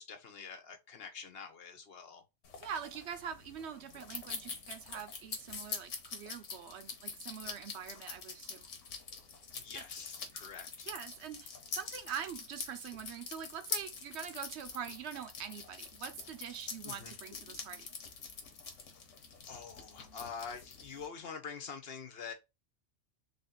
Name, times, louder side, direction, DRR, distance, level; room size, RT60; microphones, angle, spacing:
voice 1, 0.0-2.2 9.5-10.9 16.8-17.1 19.4-22.3, left 6 dB, 60° left, 0.9 m, -46 dB
sound 1, 2.4-21.1, left 5 dB, 90° left, 1.2 m, -45 dB
voice 2, 2.6-8.7 9.7-9.8 10.9-17.9, right 8 dB, 70° right, 0.8 m, -44 dB
3.4 x 2.7 x 3.8 m
omnidirectional pair, 1.2 m